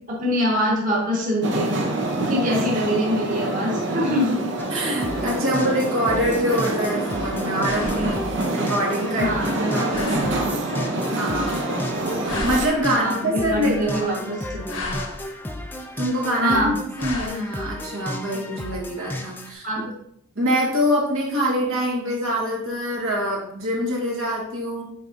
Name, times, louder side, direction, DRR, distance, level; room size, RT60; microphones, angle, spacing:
voice 1, 0.1-1.8 2.3-4.4 9.2-9.5 12.9-14.9 16.4-16.7 19.6-19.8, equal, 35° right, -5 dB, 1.5 m, -24 dB
sound 1, 1.4-12.7, right 1 dB, 55° right, 0.7 m, -26 dB
sound 2, 4.6-19.5, left 1 dB, 10° left, 0.4 m, -34 dB
voice 2, 4.7-9.3 9.6-10.6 11.1-14.1 16.0-16.7 17.0-19.8 20.4-24.8, equal, 70° right, -3 dB, 1.7 m, -25 dB
sound 3, 6.1-7.3 7.6-8.4 8.9-9.6 9.9-10.5 11.2-12.0 12.2-13.0 13.5-14.2 14.5-15.3 15.9-16.5 17.0-17.3, left 2 dB, 75° left, 1.1 m, -36 dB
8.2 x 4.6 x 2.6 m, 0.70 s
head